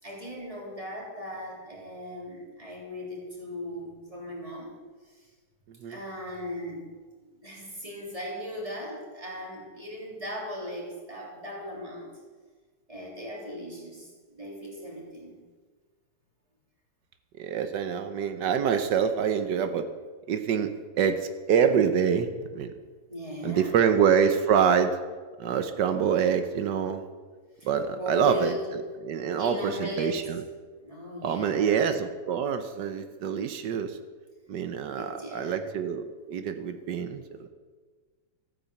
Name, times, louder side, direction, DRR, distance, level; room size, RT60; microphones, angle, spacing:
voice 1, 0.0-4.8 5.1-5.3 5.9-6.9 7.3-12.2 12.9-15.4 23.1-23.8 27.6-28.7 29.1-30.3 30.8-31.9 34.9-35.7, left 1 dB, 20° right, -3 dB, 3.6 m, -38 dB
voice 2, 17.4-19.9 20.3-22.7 23.4-25.0 25.4-27.0 27.6-28.5 29.0-30.4 31.2-34.0 34.5-37.5, right 7 dB, 85° right, 8 dB, 1.5 m, -26 dB
14.0 x 9.5 x 7.1 m, 1.4 s
omnidirectional pair, 1.8 m